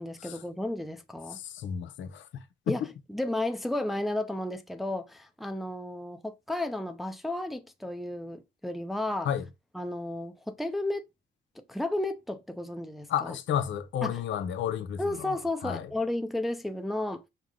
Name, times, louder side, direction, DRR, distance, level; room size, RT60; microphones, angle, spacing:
voice 1, 0.0-1.4 2.7-2.8 3.1-9.3 9.7-11.1 11.6-13.4 14.0-14.2 15.0-17.2, left 1 dB, ahead, 0.5 m, -33 dB
voice 2, 1.3-2.9 9.2-9.5 13.1-15.9, left 9 dB, 70° left, 0.7 m, -32 dB
4.6 x 2.0 x 3.7 m
cardioid pair, 90°, 20 cm